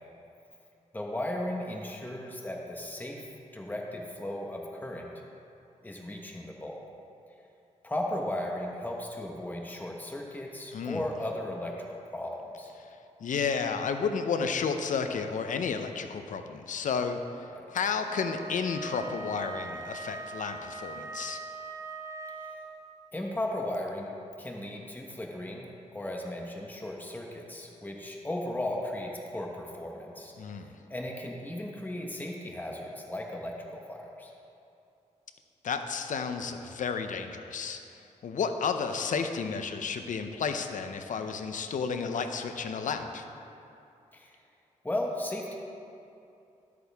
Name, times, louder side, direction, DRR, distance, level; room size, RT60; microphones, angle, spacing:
voice 1, 0.9-3.2 3.5-5.1 5.8-6.8 7.8-12.7 17.5-17.6 23.1-30.3 30.9-34.3 44.1-44.3 44.8-45.5, left 1 dB, 15° left, 0 dB, 1.1 m, -36 dB
voice 2, 10.7-11.1 13.2-17.2 17.7-21.4 30.4-30.7 35.6-37.8 38.2-43.2, left 5 dB, 75° left, 7 dB, 0.7 m, -32 dB
Wind instrument woodwind instrument, 18.1-23.0, right 3 dB, 20° right, 0.7 m, -41 dB
12.5 x 8.4 x 3.5 m, 2.7 s
cardioid pair, 85°, 13 cm